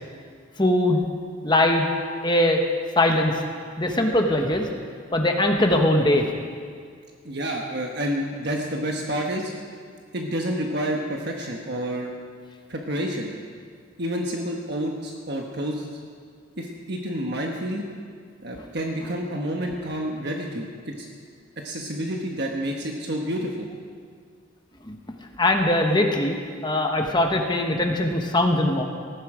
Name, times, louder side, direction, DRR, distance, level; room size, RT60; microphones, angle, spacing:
voice 1, 0.6-1.0 1.4-1.9 2.2-2.6 3.0-3.3 3.8-4.7 5.1-6.3 18.6-18.7 24.8-25.0 25.4-26.4 26.6-28.8, left 1 dB, 20° left, 3 dB, 1.2 m, -21 dB
voice 2, 7.2-9.5 10.1-12.1 12.7-13.3 14.0-15.9 16.6-17.8 18.4-21.1 21.6-23.7, right 1 dB, 55° right, 1 dB, 1.3 m, -29 dB
18.5 x 15.0 x 5.0 m, 2.1 s
head